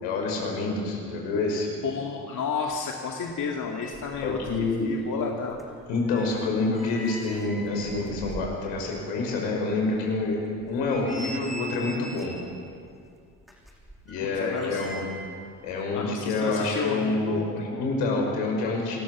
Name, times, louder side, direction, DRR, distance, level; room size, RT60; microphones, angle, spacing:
voice 1, 0.0-1.7 4.2-4.9 5.9-12.4 14.1-15.0 15.6-19.0, left 3 dB, 75° left, 0 dB, 5.6 m, -27 dB
voice 2, 1.8-4.4 4.8-5.6 14.2-14.9 15.9-17.8, left 5 dB, 45° left, 0 dB, 2.2 m, -31 dB
sound 1, 3.4-3.5 3.7-4.7 5.0-8.9 9.3-9.4 9.9-10.0 10.6-12.5 13.4-15.4 15.7-15.8, right 1 dB, ahead, 6.4 m, -42 dB
27.0 x 13.5 x 7.3 m, 2.3 s
hypercardioid pair, 65°, 43 cm